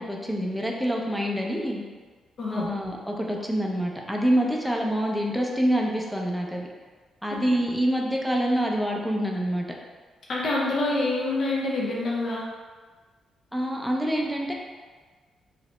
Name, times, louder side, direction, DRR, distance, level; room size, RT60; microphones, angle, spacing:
voice 1, 0.0-1.8 2.5-6.7 7.2-9.7 13.5-14.5, equal, ahead, -1 dB, 0.4 m, -26 dB
voice 2, 10.3-12.4, left 2 dB, 55° left, -4 dB, 0.5 m, -26 dB
2.8 x 2.0 x 3.0 m, 1.5 s
cardioid pair, 90°, 0 cm